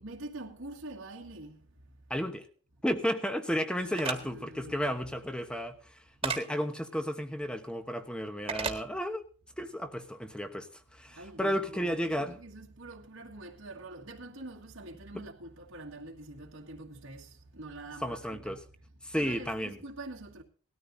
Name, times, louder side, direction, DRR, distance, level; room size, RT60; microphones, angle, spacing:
voice 1, 0.0-1.6 3.8-5.1 11.1-18.6 19.1-20.4, right 2 dB, 70° right, 1.8 m, -45 dB
voice 2, 2.1-2.5 2.8-9.2 9.6-12.4 15.1-15.2 18.0-18.6 19.0-19.8, equal, 5° left, 1.1 m, -33 dB
sound 1, 4.0-4.2 6.2-6.4 8.5-8.8, right 5 dB, 25° right, 1.7 m, -32 dB
19.0 x 13.5 x 2.7 m
head